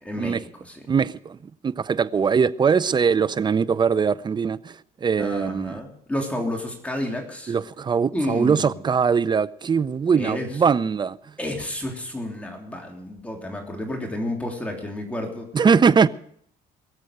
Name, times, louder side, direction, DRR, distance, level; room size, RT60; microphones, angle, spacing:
voice 1, 0.0-0.8 5.2-7.6 8.1-8.8 10.1-10.5 11.4-15.5, left 1 dB, 10° left, 3.3 m, -31 dB
voice 2, 0.9-1.4 1.6-5.8 7.5-11.2 15.5-16.1, right 6 dB, 25° right, 0.6 m, -21 dB
22.0 x 7.6 x 6.6 m
cardioid pair, 110°, 17 cm